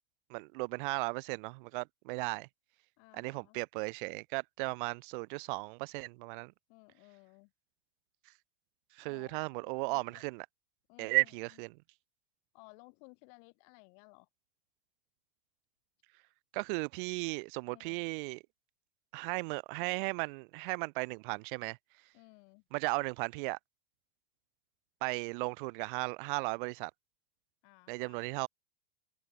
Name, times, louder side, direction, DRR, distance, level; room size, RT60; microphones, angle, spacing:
voice 1, 0.3-2.5 3.1-6.5 8.9-10.5 11.0-11.7 16.5-18.4 19.1-21.8 22.7-23.6 25.0-26.9 27.9-28.5, right 28 dB, 55° right, 0.8 m, -35 dB
voice 2, 3.0-3.6 6.7-7.5 9.0-10.2 10.9-11.3 12.5-14.3 17.7-18.0 22.1-22.6 27.6-28.3, left 40 dB or more, 55° left, 4.5 m, -59 dB
supercardioid pair, 135°, 31 cm